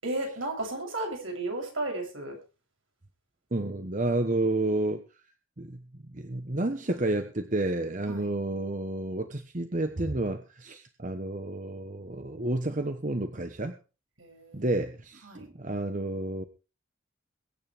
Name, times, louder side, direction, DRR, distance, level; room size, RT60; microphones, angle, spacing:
voice 1, 0.0-2.4 8.0-8.3 14.2-14.7 15.2-15.5, right 2 dB, 75° right, 1 dB, 7.5 m, -34 dB
voice 2, 3.5-5.0 5.6-5.8 6.1-13.8 14.5-16.4, right 2 dB, 40° right, 8 dB, 1.1 m, -30 dB
22.5 x 9.7 x 3.4 m, 0.33 s
head